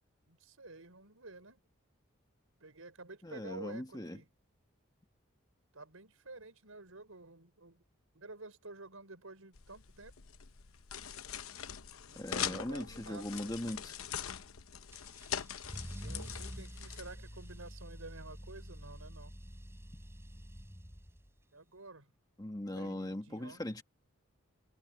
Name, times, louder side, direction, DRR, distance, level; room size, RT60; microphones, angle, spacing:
voice 1, 0.3-1.6 2.6-4.3 5.7-7.8 8.1-10.1 12.1-13.9 16.0-19.3 21.5-22.1 22.7-23.6, right 3 dB, 80° right, 5.1 m, -51 dB
voice 2, 3.2-4.2 12.1-14.0 22.4-23.8, left 1 dB, 20° left, 1.6 m, -40 dB
sound 1, 9.5-17.6, left 8 dB, 80° left, 0.9 m, -42 dB
Car / Engine starting / Accelerating revving vroom, 14.9-21.4, equal, 10° right, 4.7 m, -47 dB
head